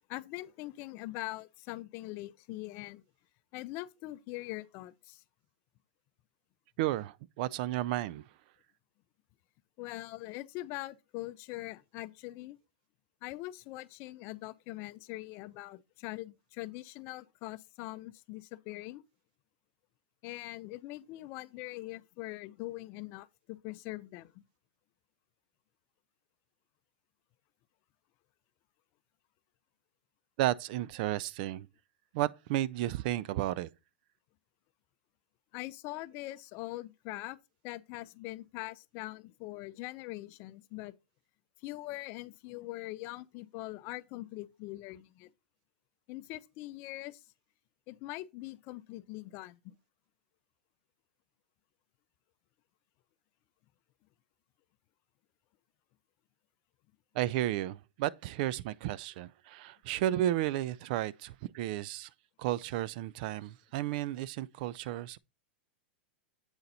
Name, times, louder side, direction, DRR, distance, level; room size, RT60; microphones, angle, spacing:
voice 1, 0.1-3.0 3.5-5.2 9.8-12.6 13.2-19.0 20.2-24.4 35.5-37.4 37.6-40.9 41.6-45.3 46.1-47.2 47.9-49.7, left 18 dB, 45° left, 0.5 m, -42 dB
voice 2, 6.8-8.2 30.4-31.7 32.1-33.7 57.1-62.1 62.4-65.2, right 14 dB, 55° right, 0.4 m, -33 dB
7.9 x 4.0 x 4.1 m
hypercardioid pair, 115°, 6 cm